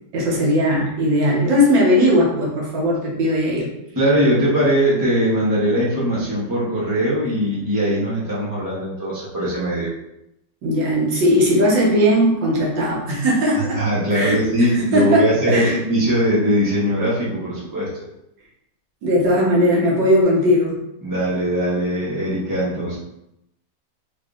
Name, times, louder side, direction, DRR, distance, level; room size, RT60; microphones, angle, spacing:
voice 1, 0.1-3.7 10.6-13.8 14.1-15.8 19.0-20.7, equal, 70° right, -3 dB, 1.7 m, -18 dB
voice 2, 4.0-9.9 13.7-18.0 21.0-23.0, equal, 25° right, -8 dB, 0.4 m, -20 dB
4.2 x 3.4 x 2.4 m, 0.82 s
omnidirectional pair, 2.1 m